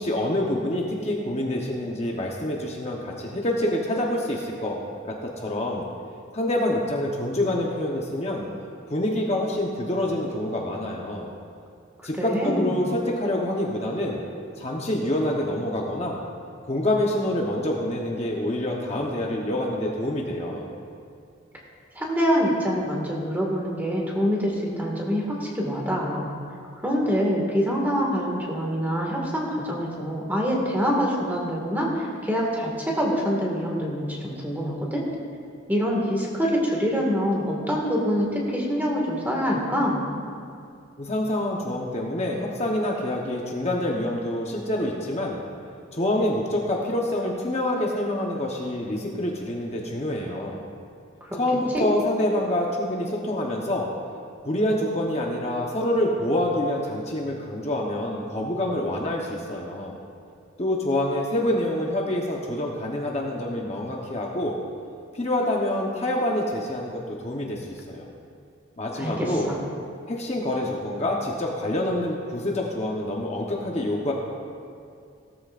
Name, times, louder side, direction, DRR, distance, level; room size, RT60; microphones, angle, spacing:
voice 1, 0.0-4.8 5.0-5.8 6.3-8.4 8.9-11.3 12.0-14.2 14.6-16.2 16.7-20.7 41.0-45.4 45.9-50.6 51.4-53.9 54.4-60.0 60.6-64.6 65.1-68.1 68.8-69.5 70.1-74.1, left 1 dB, 30° left, -1 dB, 1.0 m, -26 dB
voice 2, 12.1-12.7 21.9-26.3 26.8-35.0 35.7-40.1 51.2-51.4 51.7-51.8 69.0-69.6, equal, 10° right, -2 dB, 1.9 m, -25 dB
17.0 x 13.0 x 2.5 m, 2.5 s
head